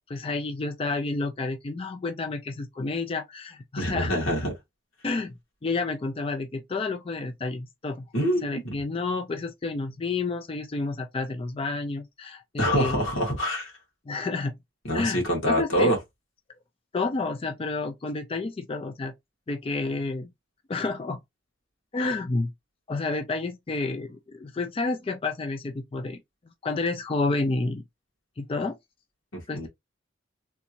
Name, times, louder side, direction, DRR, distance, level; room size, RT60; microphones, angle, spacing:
voice 1, 0.0-4.2 5.0-8.1 8.4-13.0 14.1-14.5 14.9-15.9 16.9-19.1 19.5-20.3 20.7-21.2 21.9-22.5 22.9-26.2 26.6-27.8 28.4-28.8 29.5-29.7, left 3 dB, 30° left, 0.4 m, -30 dB
voice 2, 3.8-4.5 8.1-8.7 12.6-13.7 14.9-16.0 29.3-29.7, equal, 85° left, 1.8 m, -25 dB
3.4 x 2.6 x 2.8 m
head